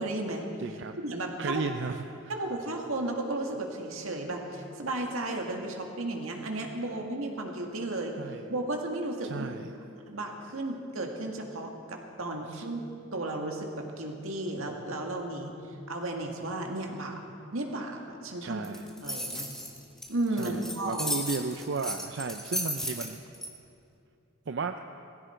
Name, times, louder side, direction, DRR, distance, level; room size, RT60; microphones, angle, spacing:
voice 1, 0.0-0.5 1.0-1.6 2.3-8.2 8.5-9.5 9.9-12.8 13.1-15.5 15.9-17.2 17.5-18.6 19.0-19.5 20.1-21.1, right 2 dB, 85° right, 2 dB, 2.0 m, -34 dB
voice 2, 0.6-1.0 1.4-2.3 8.2-8.4 9.3-9.7 12.5-12.7 18.4-18.9 20.4-23.2 24.5-24.7, right 4 dB, 60° right, 7 dB, 0.5 m, -34 dB
sound 1, 18.6-23.5, left 1 dB, ahead, 1.5 m, -34 dB
19.0 x 15.5 x 4.5 m, 2.6 s
head